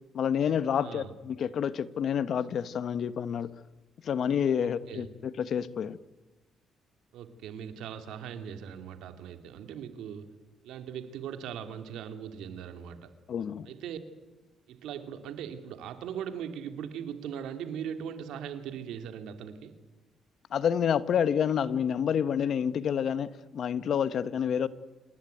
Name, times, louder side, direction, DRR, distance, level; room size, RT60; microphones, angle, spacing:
voice 1, 0.1-3.5 4.0-6.0 13.3-13.7 20.5-23.3 23.5-24.7, left 8 dB, 65° left, 15 dB, 1.2 m, -28 dB
voice 2, 0.8-1.1 4.6-5.1 7.1-10.3 10.6-13.1 13.7-14.0 14.7-19.7, right 8 dB, 85° right, 8 dB, 2.6 m, -39 dB
26.5 x 20.0 x 9.2 m, 1.1 s
cardioid pair, 90°, 0 cm